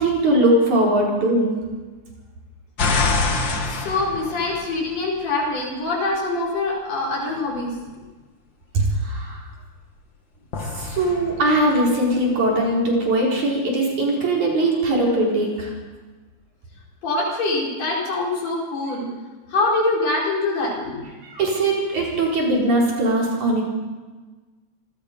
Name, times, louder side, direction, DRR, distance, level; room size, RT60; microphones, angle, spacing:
voice 1, 0.0-1.5 8.7-9.4 10.8-15.7 21.2-23.6, right 1 dB, 75° right, -2 dB, 5.8 m, -20 dB
sound 1, 2.8-5.2 10.5-12.6, left 3 dB, 45° left, 2.2 m, -26 dB
voice 2, 3.6-7.7 17.0-19.1 19.5-21.1, left 2 dB, 60° left, -4 dB, 6.1 m, -24 dB
27.5 x 19.0 x 5.3 m, 1.3 s
omnidirectional pair, 3.4 m